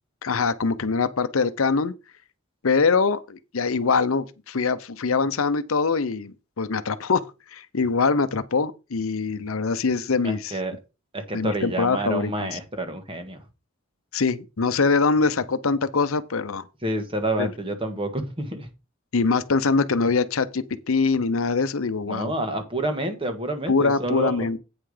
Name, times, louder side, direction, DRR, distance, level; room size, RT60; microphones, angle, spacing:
voice 1, 0.2-1.9 2.6-7.2 7.5-10.5 11.3-12.6 14.1-16.7 17.4-17.5 19.1-22.3 23.7-24.6, left 4 dB, 80° left, 0.7 m, -23 dB
voice 2, 10.2-10.8 11.1-13.4 16.8-18.7 22.1-24.5, right 1 dB, 25° right, 1.6 m, -28 dB
8.9 x 5.7 x 4.9 m
head